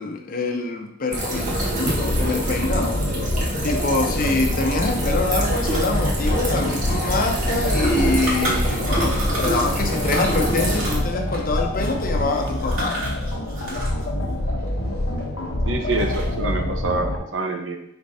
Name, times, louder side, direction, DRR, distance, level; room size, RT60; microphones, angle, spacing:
voice 1, 0.0-3.0 3.6-13.0, left 3 dB, 45° left, 3 dB, 0.8 m, -25 dB
sound 1, 1.1-10.9, right 1 dB, 40° right, 1.6 m, -26 dB
sound 2, 1.8-17.2, left 1 dB, 85° left, 1.0 m, -26 dB
sound 3, 5.3-9.7 10.0-14.0 14.3-15.5 15.8-16.4, right 2 dB, 85° right, 2.8 m, -33 dB
voice 2, 15.6-17.8, right 3 dB, 70° right, 4 dB, 0.9 m, -26 dB
10.0 x 4.5 x 2.8 m, 0.79 s
head